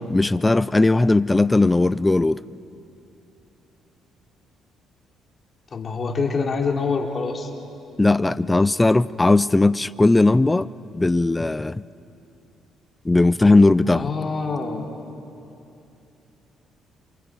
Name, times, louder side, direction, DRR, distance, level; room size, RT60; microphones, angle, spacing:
voice 1, 0.1-2.4 8.0-10.7 10.9-11.8 13.0-14.1, left 2 dB, 15° left, 18 dB, 0.5 m, -18 dB
voice 2, 5.7-7.5 13.9-14.8, left 4 dB, 45° left, 1 dB, 3.0 m, -25 dB
28.0 x 27.5 x 4.6 m, 2.8 s
supercardioid pair, 75°, 0 cm